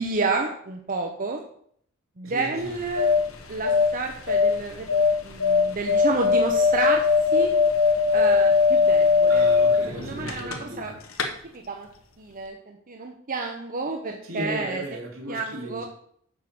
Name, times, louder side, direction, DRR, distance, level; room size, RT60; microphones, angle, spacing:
voice 1, 0.0-1.4 2.2-3.1 3.5-4.9 5.2-7.1 7.3-7.5 8.1-9.5 9.9-10.9 11.5-11.9 12.2-14.8 15.3-15.8, right 3 dB, 40° right, 3 dB, 0.8 m, -30 dB
voice 2, 2.2-2.8 9.3-11.0 14.2-15.9, equal, 70° right, 0 dB, 2.5 m, -36 dB
sound 1, 2.6-10.8 11.1-11.3, left 5 dB, 70° left, 1.2 m, -21 dB
7.4 x 6.5 x 6.0 m, 0.64 s
head